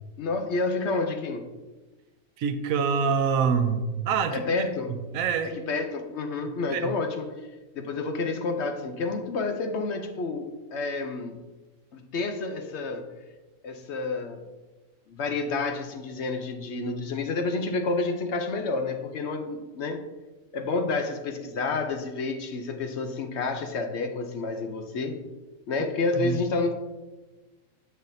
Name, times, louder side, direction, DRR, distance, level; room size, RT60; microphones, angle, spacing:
voice 1, 0.2-1.5 4.3-4.9 5.4-7.5 7.8-11.4 11.9-13.1 13.6-14.4 15.1-20.1 20.5-25.2 25.7-26.7, left 3 dB, 65° left, 6 dB, 0.8 m, -29 dB
voice 2, 2.4-4.4 4.9-5.5 6.7-6.9 26.1-26.4, right 6 dB, 85° right, 8 dB, 1.0 m, -26 dB
7.1 x 6.4 x 2.6 m, 1.2 s
omnidirectional pair, 1.4 m